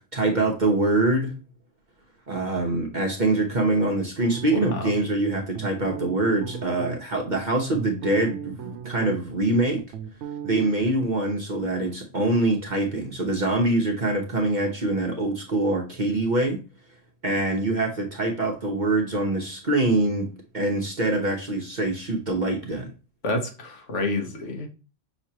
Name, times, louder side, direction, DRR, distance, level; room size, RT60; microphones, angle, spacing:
voice 1, 0.0-1.3 2.3-9.8 10.4-16.6 17.2-20.3 20.5-22.9, right 2 dB, 45° right, 1.0 m, -24 dB
sound 1, 4.2-5.0 5.5-7.0 7.5-9.4 9.6-10.7, right 8 dB, 75° right, 0.9 m, -36 dB
voice 2, 4.5-4.9 23.2-24.7, left 2 dB, 75° left, 1.5 m, -29 dB
5.9 x 3.1 x 2.8 m
omnidirectional pair, 1.2 m